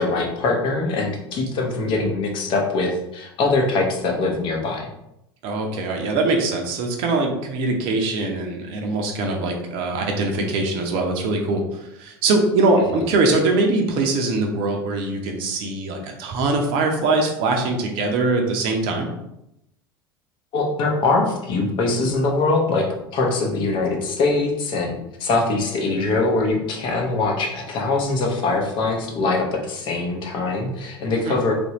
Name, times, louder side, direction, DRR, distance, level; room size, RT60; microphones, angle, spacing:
voice 1, 0.0-4.9 20.5-22.8 23.1-31.5, left 3 dB, 40° left, 1 dB, 0.8 m, -22 dB
voice 2, 5.4-19.1 31.3-31.4, right 3 dB, 45° right, 2 dB, 0.6 m, -22 dB
3.2 x 2.6 x 2.9 m, 0.83 s
figure-of-eight pair, 75°, 12 cm